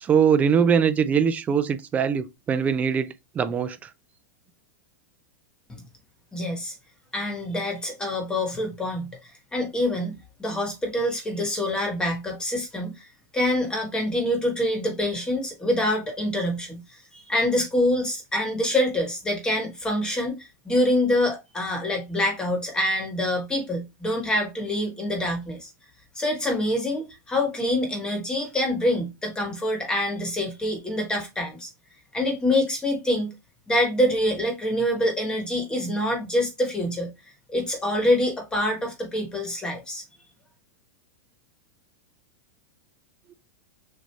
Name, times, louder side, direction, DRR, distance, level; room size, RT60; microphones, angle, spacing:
voice 1, 0.0-3.9, right 7 dB, 15° right, 0.4 m, -22 dB
voice 2, 6.3-6.7 7.1-10.1 10.4-12.9 13.3-25.7 26.1-31.7 32.1-33.3 33.7-37.1 37.5-40.0, left 1 dB, 10° left, 1.3 m, -26 dB
6.3 x 2.6 x 3.2 m
supercardioid pair, 155°, 10 cm